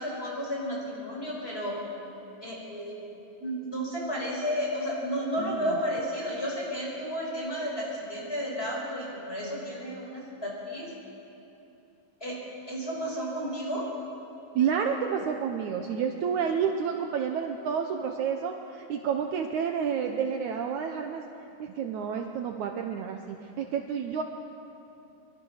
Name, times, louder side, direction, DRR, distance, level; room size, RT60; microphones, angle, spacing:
voice 1, 0.0-1.8 2.4-3.1 3.4-10.9 12.2-12.4 12.7-13.9, equal, 15° left, -3 dB, 6.0 m, -32 dB
voice 2, 5.4-5.8 14.6-21.2 21.6-24.2, right 7 dB, 80° right, 4 dB, 1.7 m, -30 dB
24.0 x 23.5 x 6.5 m, 2.8 s
omnidirectional pair, 4.7 m